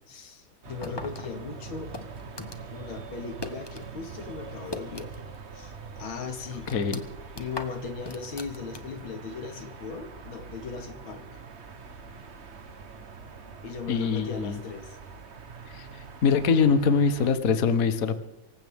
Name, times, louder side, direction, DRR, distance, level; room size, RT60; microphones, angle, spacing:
voice 1, 0.1-2.0 2.7-5.2 5.5-6.7 7.4-11.2 13.6-15.0, left 5 dB, 90° left, 6 dB, 2.7 m, -38 dB
sound 1, 0.6-17.3, right 5 dB, 40° right, 1.2 m, -44 dB
sound 2, 0.8-3.9 4.2-5.4 5.7-5.8 6.3-9.1, left 2 dB, 15° left, 0.9 m, -41 dB
voice 2, 6.7-7.0 13.9-14.6 15.7-15.9 16.2-18.1, left 5 dB, 50° left, 9 dB, 1.5 m, -23 dB
25.0 x 15.5 x 3.6 m, 0.90 s
omnidirectional pair, 2.2 m